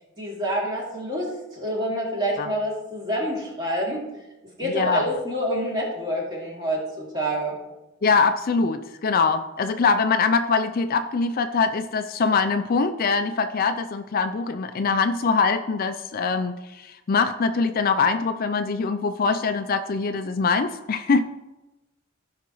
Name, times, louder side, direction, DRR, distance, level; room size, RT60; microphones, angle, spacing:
voice 1, 0.2-4.0 4.6-7.6, equal, 20° right, -4 dB, 2.6 m, -27 dB
voice 2, 4.6-5.1 8.0-21.2, left 4 dB, 45° left, 9 dB, 0.4 m, -23 dB
16.0 x 5.7 x 3.1 m, 1.0 s
head